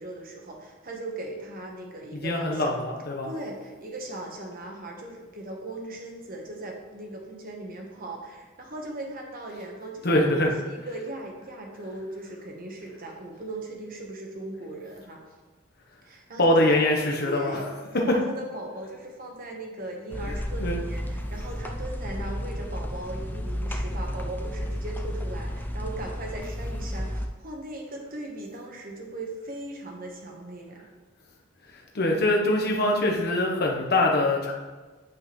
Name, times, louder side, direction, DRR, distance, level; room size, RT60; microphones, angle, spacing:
voice 1, 0.0-2.7 3.2-15.2 16.0-16.8 17.2-17.7 17.9-30.9, right 1 dB, 45° right, 1 dB, 1.2 m, -38 dB
voice 2, 2.2-3.3 10.0-10.5 16.4-17.7 20.6-20.8 31.9-34.5, left 1 dB, 50° left, 0 dB, 1.0 m, -23 dB
sound 1, 20.1-27.3, equal, 10° left, 0.4 m, -32 dB
8.5 x 5.5 x 3.2 m, 1.3 s
head